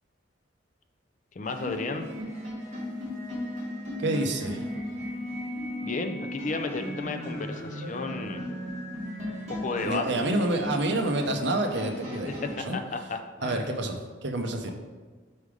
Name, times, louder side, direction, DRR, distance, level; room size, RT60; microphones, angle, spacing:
voice 1, 1.3-2.1 5.8-8.4 9.5-10.5 12.4-13.7, left 3 dB, 40° left, 6 dB, 0.4 m, -33 dB
sound 1, 1.4-12.6, left 1 dB, 35° right, 2.0 m, -36 dB
voice 2, 4.0-4.7 9.8-12.8 13.4-14.7, right 2 dB, 60° right, 4 dB, 0.7 m, -28 dB
5.3 x 4.8 x 4.8 m, 1.4 s
head